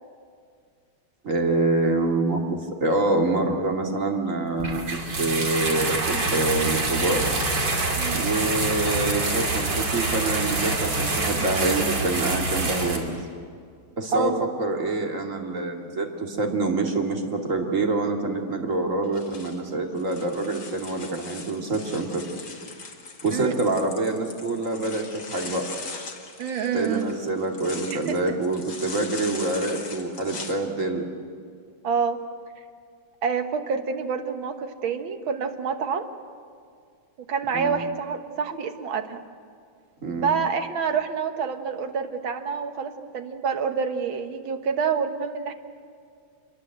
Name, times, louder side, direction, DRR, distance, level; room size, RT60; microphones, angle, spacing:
voice 1, 1.2-4.8 5.2-7.4 8.1-13.2 14.0-22.2 23.2-25.6 26.7-31.1 37.5-37.8 40.0-40.3, right 2 dB, 40° right, 2 dB, 2.6 m, -26 dB
sound 1, 4.6-13.0, right 2 dB, 60° right, 3.4 m, -26 dB
voice 2, 8.0-8.3 14.1-14.4 23.3-23.6 26.4-27.1 27.9-28.4 31.8-32.2 33.2-36.1 37.3-39.2 40.2-45.5, right 6 dB, 75° right, 7 dB, 2.1 m, -27 dB
sound 2, 19.0-30.5, left 4 dB, 55° left, 2.6 m, -40 dB
25.5 x 21.5 x 7.8 m, 2.2 s
omnidirectional pair, 2.2 m